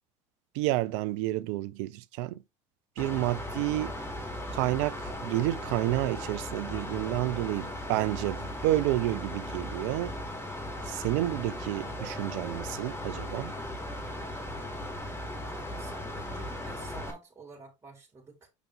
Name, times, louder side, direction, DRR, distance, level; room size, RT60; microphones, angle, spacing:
voice 1, 0.5-2.4 3.0-3.9 4.5-10.2 10.9-13.5, right 16 dB, 70° right, 0.7 m, -30 dB
Mechanical fan, 3.0-17.1, left 1 dB, 15° left, 3.9 m, -37 dB
voice 2, 15.4-18.5, right 3 dB, 20° right, 3.9 m, -50 dB
8.3 x 5.3 x 3.5 m
hypercardioid pair, 75°, 16 cm